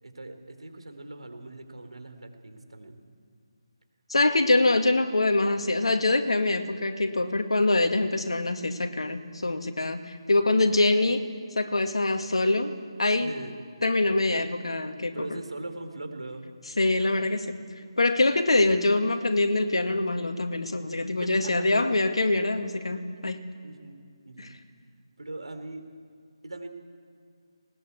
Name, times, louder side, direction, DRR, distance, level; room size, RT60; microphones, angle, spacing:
voice 1, 0.0-3.0 13.2-13.6 15.1-16.5 21.2-21.5 23.6-24.6 25.2-25.8 26.4-26.7, right 2 dB, 80° right, 7 dB, 3.8 m, -40 dB
voice 2, 4.1-11.3 11.6-13.3 13.8-15.4 16.8-17.6 18.0-23.5 24.4-24.5, left 2 dB, 75° left, 6 dB, 2.1 m, -24 dB
20.0 x 20.0 x 8.4 m, 2.3 s
figure-of-eight pair, 155°, 3 cm